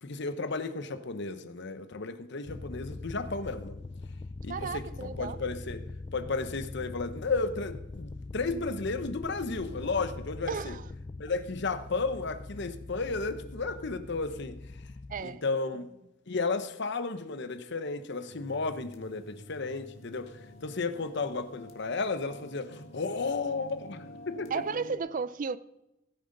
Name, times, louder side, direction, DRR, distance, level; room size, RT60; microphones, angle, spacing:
voice 1, 0.0-3.8 4.4-5.8 6.1-10.8 11.2-14.6 15.2-15.9 16.3-24.5, left 3 dB, 60° left, 0.8 m, -33 dB
sound 1, 2.5-15.2, left 3 dB, 25° left, 0.3 m, -42 dB
voice 2, 4.5-5.4 10.5-10.8 15.1-15.4 24.5-25.6, right 5 dB, 40° right, 0.4 m, -34 dB
sound 2, 18.3-25.0, left 1 dB, 80° left, 1.6 m, -49 dB
16.5 x 9.2 x 3.9 m
head